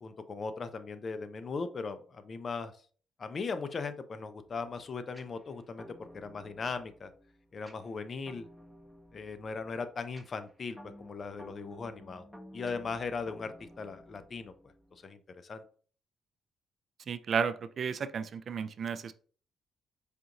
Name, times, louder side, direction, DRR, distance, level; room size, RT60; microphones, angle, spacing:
voice 1, 0.0-2.7 3.2-7.1 7.5-8.5 9.1-12.2 12.5-14.5 14.9-15.6, left 4 dB, 45° left, 11 dB, 0.5 m, -38 dB
sound 1, 5.1-15.1, equal, 5° left, 0.9 m, -54 dB
voice 2, 17.1-19.1, right 6 dB, 50° right, 12 dB, 0.3 m, -33 dB
4.9 x 2.5 x 2.8 m, 0.43 s
cardioid pair, 90°, 0 cm